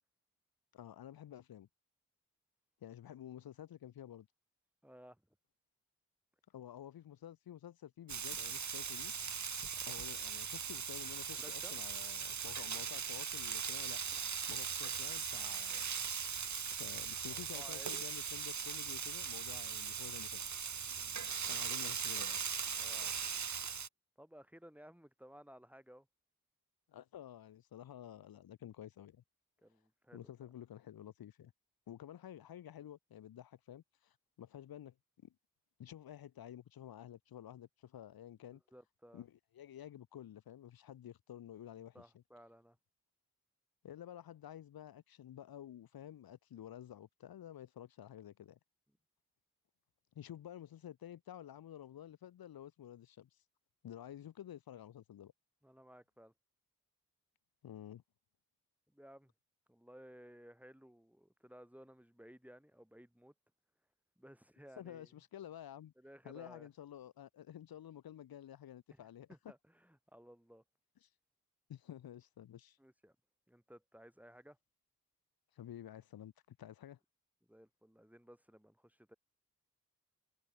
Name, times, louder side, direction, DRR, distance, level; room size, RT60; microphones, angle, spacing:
voice 1, 0.7-1.7 2.8-4.3 6.5-9.1 9.8-14.0 14.5-15.8 16.1-16.2 16.8-20.4 21.5-22.4 26.9-29.2 30.1-31.5 31.9-34.9 35.2-35.3 35.8-38.6 39.1-41.9 43.8-48.6 50.1-53.4 53.8-55.3 57.6-58.0 64.8-65.9 66.2-69.3 71.0-71.1 71.7-72.8 75.5-77.0, left 11 dB, 80° left, 1.3 m, -51 dB
voice 2, 4.8-5.2 11.3-11.8 17.3-18.0 20.8-21.2 21.8-22.4 22.7-23.1 24.2-26.1 29.6-30.3 38.5-39.2 41.9-42.8 55.6-56.3 58.9-59.3 59.7-63.3 64.2-65.1 66.0-66.7 68.9-69.0 69.3-70.6 72.8-73.2 73.5-74.6 77.5-79.2, equal, 5° right, 7.5 m, -58 dB
Frying (food), 8.1-23.9, right 7 dB, 55° right, 1.5 m, -39 dB
cardioid pair, 45°, 35 cm